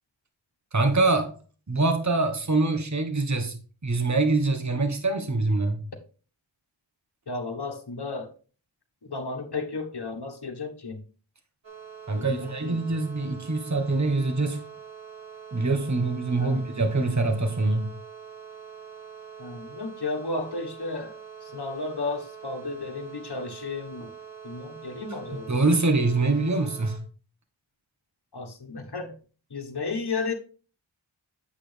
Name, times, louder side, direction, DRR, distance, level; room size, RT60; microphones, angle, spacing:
voice 1, 0.7-1.4 1.7-3.6 3.8-5.8 12.1-14.6 15.5-17.9 25.5-27.0, right 3 dB, 35° right, 1.3 m, -24 dB
voice 2, 7.3-8.3 9.0-11.0 12.2-12.8 16.4-16.6 19.4-24.1 24.4-25.5 28.3-29.2 29.5-30.3, left 3 dB, 55° left, 1.5 m, -33 dB
sound 1, 11.6-27.0, right 7 dB, 70° right, 1.8 m, -44 dB
8.5 x 7.6 x 3.4 m
wide cardioid pair, 40°, 46 cm